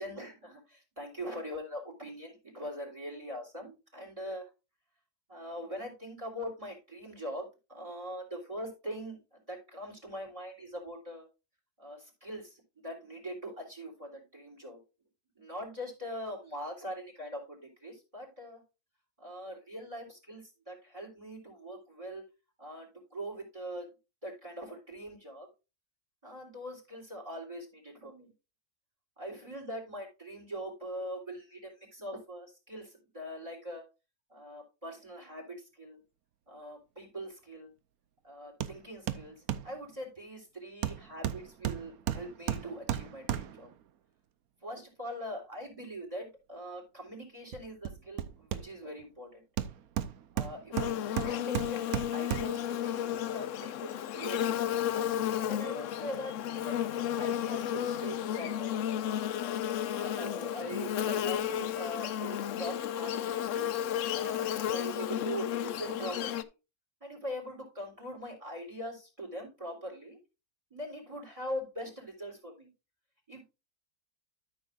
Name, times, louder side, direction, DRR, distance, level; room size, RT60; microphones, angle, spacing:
voice 1, 0.0-4.4 5.3-9.2 9.5-11.3 11.8-14.8 15.4-18.6 19.2-22.2 22.6-23.9 24.2-25.5 26.2-28.3 29.2-33.8 34.3-36.0 36.5-37.7 38.2-39.4 39.6-43.7 44.6-49.4 50.3-54.7 55.4-59.0 59.9-63.7 64.1-66.5 67.0-70.2 70.7-72.7 73.3-73.4, equal, 20° right, 1 dB, 3.3 m, -42 dB
Hammer, 38.6-38.8 39.1-39.7 40.8-43.7 47.5-49.0 49.6-52.7 53.1-53.2, right 10 dB, 75° right, 1.1 m, -35 dB
Buzz, 50.7-66.4, left 10 dB, 65° left, 0.8 m, -33 dB
13.0 x 6.3 x 2.5 m, 0.28 s
omnidirectional pair, 1.6 m